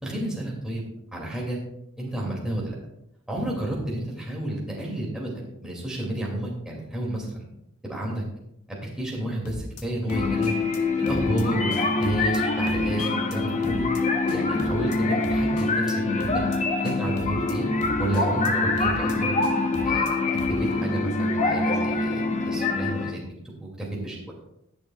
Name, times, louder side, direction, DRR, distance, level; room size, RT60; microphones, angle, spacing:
voice 1, 0.0-0.9 1.1-1.6 2.0-2.8 3.3-7.5 7.8-8.2 8.7-10.5 11.0-13.9 14.3-16.4 16.8-17.7 18.0-19.3 19.8-23.2 23.6-24.3, right 1 dB, 5° right, -4 dB, 2.5 m, -31 dB
sound 1, 9.4-9.8 10.1-10.8 11.1-11.4 11.7-12.4 12.7-13.4 13.6-14.0 14.3-15.0 15.2-15.9 16.2-16.6 16.8-17.5 17.8-18.5 18.8-19.1 19.4-20.1 20.4-20.7, left 1 dB, 80° left, 1.2 m, -37 dB
sound 2, 10.1-23.1, left 3 dB, 30° left, 1.0 m, -25 dB
21.0 x 7.0 x 2.4 m, 0.83 s
head